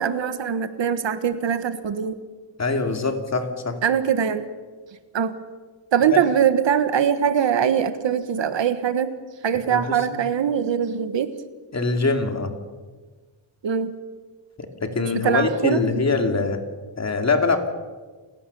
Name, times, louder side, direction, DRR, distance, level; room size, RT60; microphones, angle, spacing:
voice 1, 0.0-2.1 3.8-4.5 5.1-5.4 5.9-9.1 9.4-11.3 13.6-14.0 15.2-15.8, right 8 dB, 65° right, 11 dB, 1.5 m, -22 dB
voice 2, 2.6-3.8 6.1-6.2 9.7-10.2 11.7-12.5 14.6-16.6 17.0-17.7, left 3 dB, 35° left, 5 dB, 2.6 m, -23 dB
29.5 x 17.0 x 7.0 m, 1.4 s
wide cardioid pair, 140°, 49 cm